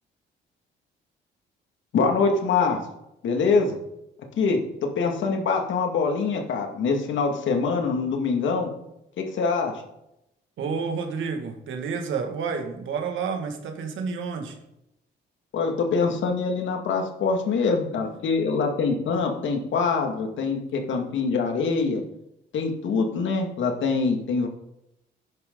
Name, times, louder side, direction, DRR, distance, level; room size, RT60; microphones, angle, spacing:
voice 1, 1.9-2.8 3.2-3.8 4.4-8.7 9.2-9.8 15.5-22.0 22.5-24.5, left 4 dB, 70° left, 3 dB, 2.2 m, -24 dB
voice 2, 10.6-14.6, right 5 dB, 80° right, 3 dB, 2.1 m, -30 dB
11.5 x 10.5 x 4.0 m, 0.85 s
cardioid pair, 90°, 20 cm